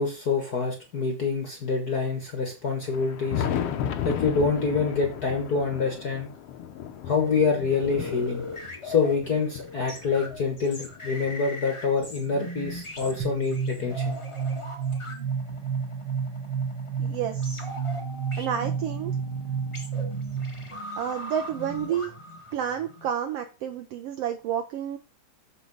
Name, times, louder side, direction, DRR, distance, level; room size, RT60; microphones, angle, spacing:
voice 1, 0.0-3.5 4.0-6.3 7.1-8.4 8.8-14.2, left 4 dB, 45° left, 3 dB, 1.3 m, -26 dB
Thunder, 2.8-11.4 12.0-13.7 14.9-15.0 15.5-15.6 17.5-17.6 18.9-19.0 20.6-20.7, left 9 dB, 65° left, 1.6 m, -35 dB
sound 1, 7.1-23.1, left 1 dB, 25° left, 0.6 m, -40 dB
sound 2, 13.2-20.8, right 6 dB, 50° right, 1.7 m, -31 dB
voice 2, 17.0-17.6 18.4-19.1 21.0-22.1 22.5-25.0, right 9 dB, 80° right, 6 dB, 1.4 m, -30 dB
6.7 x 6.6 x 4.8 m, 0.33 s
omnidirectional pair, 3.5 m